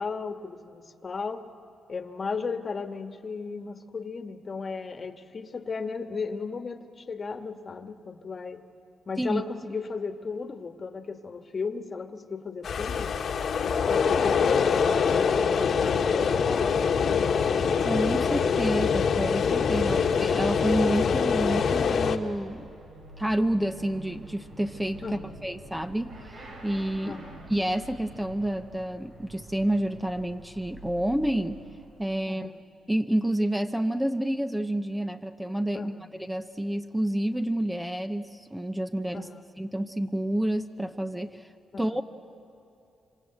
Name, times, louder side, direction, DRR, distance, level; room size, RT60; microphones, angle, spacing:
voice 1, 0.0-1.4 1.9-8.6 9.1-13.1 13.6-17.8 25.0-25.4 27.0-27.4 32.3-32.6 35.7-36.2 39.1-39.5 41.7-41.9, left 4 dB, 40° left, 7 dB, 1.5 m, -35 dB
sound 1, 12.6-22.2, left 6 dB, 65° left, 1.5 m, -24 dB
voice 2, 17.8-22.7 23.2-25.0 25.4-26.3 26.6-27.2 27.5-31.6 32.0-32.4 32.9-35.9 36.2-39.3 39.6-41.5 41.8-42.0, right 1 dB, 5° right, 7 dB, 0.9 m, -29 dB
Motorcycle / Accelerating revving vroom, 18.5-32.3, right 2 dB, 75° right, 5.3 m, -48 dB
26.0 x 25.5 x 7.9 m, 2.7 s
cardioid pair, 90°, 0 cm